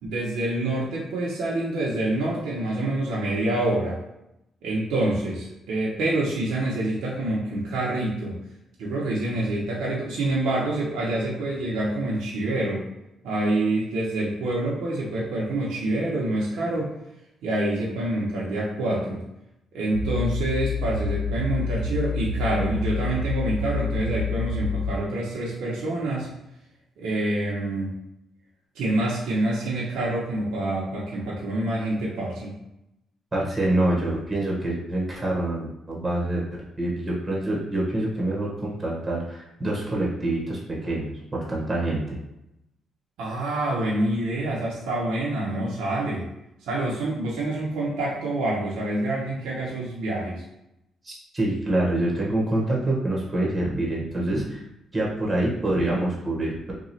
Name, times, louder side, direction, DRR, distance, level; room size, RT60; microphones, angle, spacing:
voice 1, 0.0-4.0 4.6-8.4 8.8-12.8 13.2-16.9 17.4-19.2 19.7-26.3 27.0-28.0 28.7-32.5 43.2-46.3 46.6-50.4, right 1 dB, 85° right, -5 dB, 0.8 m, -26 dB
sound 1, 19.9-24.9, left 3 dB, 80° left, 0.4 m, -28 dB
voice 2, 33.3-42.2 51.0-54.6 54.9-56.7, right 1 dB, 25° right, -4 dB, 1.1 m, -26 dB
3.0 x 2.3 x 4.1 m, 0.86 s
cardioid pair, 90°, 0 cm